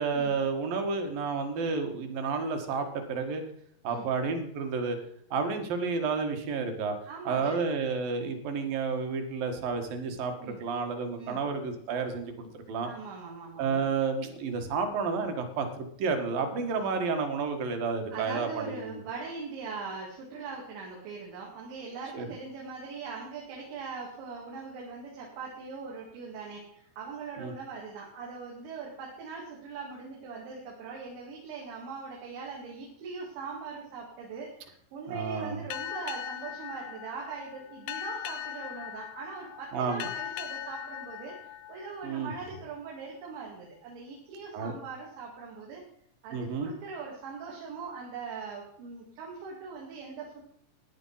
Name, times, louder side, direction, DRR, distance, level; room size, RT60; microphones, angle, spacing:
voice 1, 0.0-3.4 3.8-5.0 5.3-7.0 7.3-12.9 13.6-18.7 22.1-22.3 27.4-27.5 35.1-35.6 39.7-40.1 42.0-42.3 44.5-44.7 46.3-46.7, right 5 dB, 60° right, 6 dB, 3.0 m, -31 dB
voice 2, 7.1-7.6 10.4-10.6 11.2-11.4 12.8-13.9 16.7-17.0 18.1-45.8 46.2-50.4, right 5 dB, 85° right, -2 dB, 4.6 m, -41 dB
Boat Water vehicle, 35.7-42.8, left 11 dB, 85° left, 3.0 m, -40 dB
14.5 x 10.0 x 5.6 m, 0.68 s
omnidirectional pair, 5.1 m